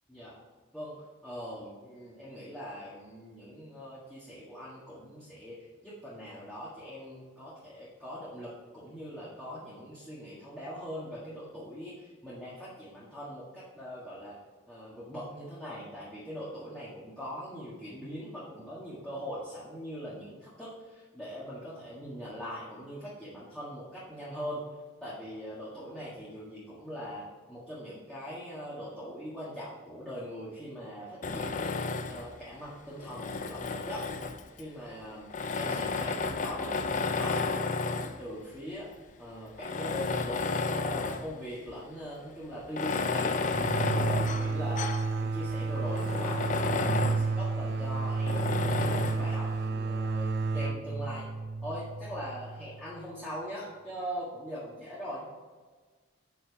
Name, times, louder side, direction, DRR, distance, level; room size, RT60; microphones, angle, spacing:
voice 1, 1.2-5.6 5.8-14.3 14.7-24.6 25.0-34.0 34.6-35.3 35.5-37.3 37.6-38.9 39.2-43.4 43.8-50.3 50.5-51.2 51.6-55.3, equal, 5° left, -10 dB, 1.7 m, -41 dB
Tools, 31.2-32.3 33.0-34.6 35.3-38.2 38.9-39.0 39.6-41.3 41.7-41.8 42.6-45.1 45.5-45.6 45.9-47.3 48.3-49.3, left 4 dB, 35° left, 0.5 m, -32 dB
sound 1, 43.5-53.0, right 3 dB, 50° right, 0.4 m, -31 dB
8.0 x 6.0 x 4.8 m, 1.4 s
head